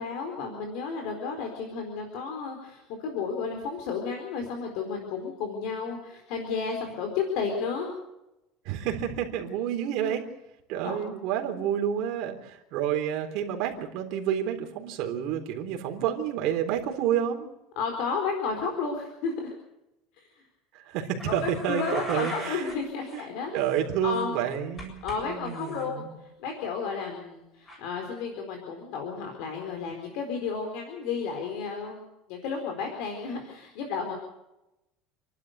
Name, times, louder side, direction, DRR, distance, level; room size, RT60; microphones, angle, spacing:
voice 1, 0.0-7.9 10.8-11.0 17.8-19.5 20.2-20.4 21.3-23.6 24.0-24.3 25.0-34.1, left 5 dB, 60° left, 3 dB, 4.2 m, -32 dB
voice 2, 8.7-10.2 10.7-17.5 20.7-22.6 23.1-23.2 23.5-26.1, right 9 dB, 55° right, 4 dB, 3.6 m, -29 dB
sound 1, 21.2-22.8 23.0-23.2 23.6-25.2 25.4-25.8 27.7-27.8, equal, 15° left, 7.6 m, -40 dB
29.0 x 12.0 x 8.1 m, 0.93 s
cardioid pair, 165°, 0 cm